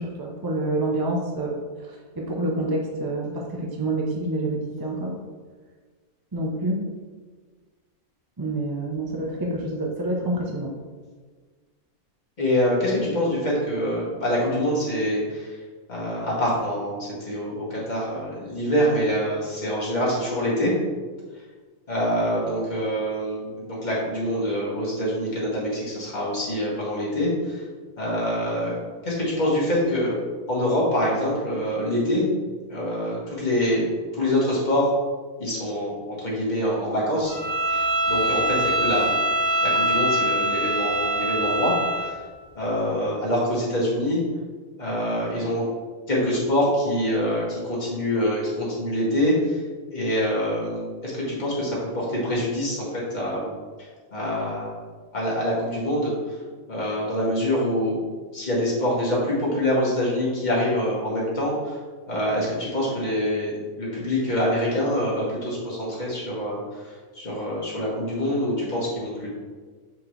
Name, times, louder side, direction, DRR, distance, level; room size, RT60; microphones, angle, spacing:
voice 1, 0.0-5.2 6.3-6.8 8.4-10.7, right 1 dB, 30° right, -1 dB, 0.4 m, -27 dB
voice 2, 12.4-15.6 15.9-20.8 21.9-27.6 28.0-30.2 30.5-32.3 32.7-33.9 34.1-34.9 35.4-37.3 37.7-39.2 39.6-42.2 42.6-44.2 44.8-45.7 46.1-49.6 49.9-53.5 54.1-54.8 55.1-56.1 56.7-58.0 58.3-61.8 62.1-63.5 63.8-69.3, equal, 30° left, -6 dB, 1.9 m, -25 dB
Bowed string instrument, 37.3-42.1, right 1 dB, 75° right, 2.7 m, -23 dB
6.8 x 5.0 x 3.2 m, 1.5 s
omnidirectional pair, 1.6 m